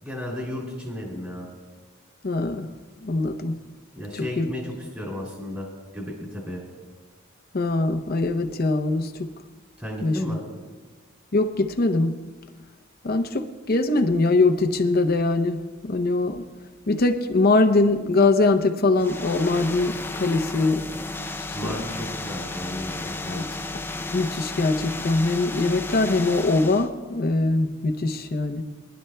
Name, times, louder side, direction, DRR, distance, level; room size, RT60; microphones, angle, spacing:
voice 1, 0.0-1.5 3.9-5.7 5.9-6.6 9.8-10.4 21.5-23.4, left 1 dB, 15° right, 2.6 m, -33 dB
voice 2, 2.2-2.7 3.0-3.6 4.4-4.5 7.5-9.3 10.0-10.4 11.3-12.2 13.0-16.4 16.9-20.8 21.6-21.7 23.3-23.4 24.1-28.6, left 2 dB, 50° left, 0.7 m, -22 dB
sound 1, 18.9-26.9, left 2 dB, 10° left, 0.5 m, -33 dB
23.5 x 11.5 x 2.2 m
head